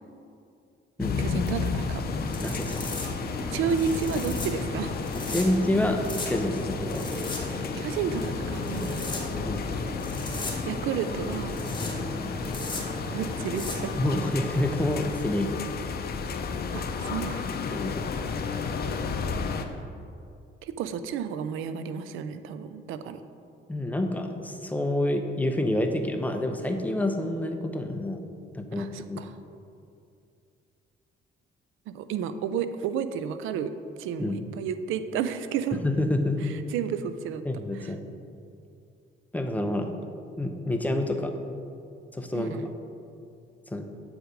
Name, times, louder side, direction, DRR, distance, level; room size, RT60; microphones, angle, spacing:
sound 1, 1.0-19.6, left 5 dB, 50° left, 0.6 m, -33 dB
voice 1, 1.2-2.0 3.5-5.0 7.5-9.1 10.7-11.6 13.1-13.9 16.7-17.6 20.6-23.2 28.8-29.3 31.9-33.7 34.0-35.8 36.4-37.4 37.8-37.9 42.3-42.7, right 7 dB, 90° right, 11 dB, 0.5 m, -32 dB
sound 2, 2.0-14.3, left 2 dB, 25° left, 1.4 m, -35 dB
voice 2, 2.4-2.9 5.3-7.2 9.4-9.7 14.0-15.6 17.7-18.3 23.7-28.3 28.5-29.2 34.2-34.4 35.8-36.5 37.4-38.0 39.3-40.0 40.4-41.3 42.1-42.6 43.7-43.8, left 1 dB, 10° left, 4 dB, 0.7 m, -28 dB
7.9 x 4.8 x 5.0 m, 2.5 s
cardioid pair, 90°, 20 cm